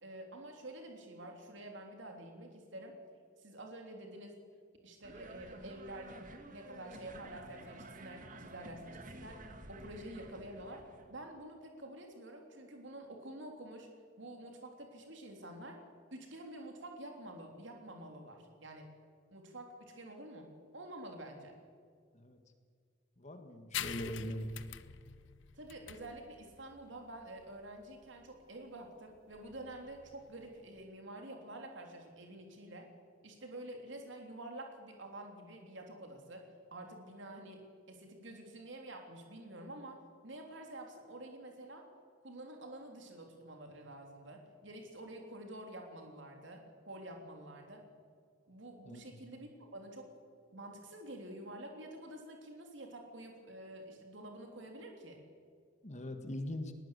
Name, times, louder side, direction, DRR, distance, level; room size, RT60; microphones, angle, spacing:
voice 1, 0.0-2.9 3.4-4.4 4.8-6.1 6.4-9.4 9.7-10.8 11.1-13.9 14.2-15.8 16.1-18.9 19.3-20.5 20.7-21.6 25.5-32.9 33.2-37.6 37.9-41.9 42.2-47.8 48.5-50.2 50.5-55.2, right 1 dB, 65° right, 3 dB, 3.3 m, -48 dB
sound 1, 5.0-11.1, right 2 dB, 40° right, 1.9 m, -52 dB
voice 2, 23.2-24.5 48.9-49.1 55.8-56.7, left 1 dB, 35° left, 7 dB, 1.8 m, -41 dB
sound 2, 23.7-30.9, left 9 dB, 65° left, 0.9 m, -46 dB
20.5 x 19.0 x 8.3 m, 2.1 s
head